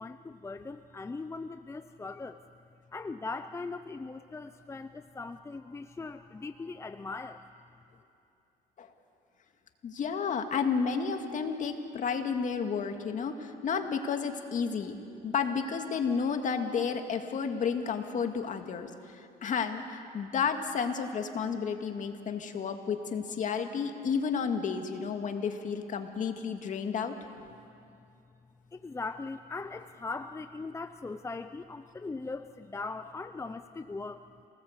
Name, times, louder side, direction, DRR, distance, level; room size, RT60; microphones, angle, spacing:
voice 1, 0.0-2.4 2.9-7.4 28.7-34.3, left 3 dB, 15° left, 9 dB, 0.6 m, -40 dB
voice 2, 9.8-14.9 15.2-27.1, left 6 dB, 50° left, 5 dB, 2.1 m, -31 dB
27.5 x 19.0 x 8.2 m, 2.6 s
cardioid pair, 110°, 17 cm